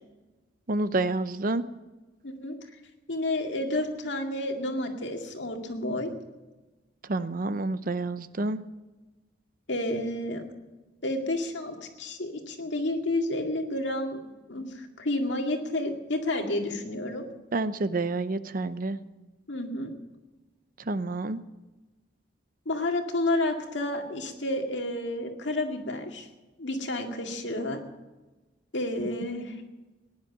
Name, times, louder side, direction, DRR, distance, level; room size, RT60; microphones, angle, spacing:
voice 1, 0.7-1.6 7.1-8.6 17.5-19.0 20.9-21.4, right 2 dB, 50° right, 14 dB, 0.6 m, -28 dB
voice 2, 2.2-2.6 3.1-6.1 9.7-10.4 11.0-14.2 14.5-17.3 19.5-19.9 22.7-26.3 26.6-27.8 28.7-29.5, left 1 dB, 70° left, 3 dB, 2.1 m, -30 dB
17.5 x 10.5 x 7.1 m, 1.2 s
head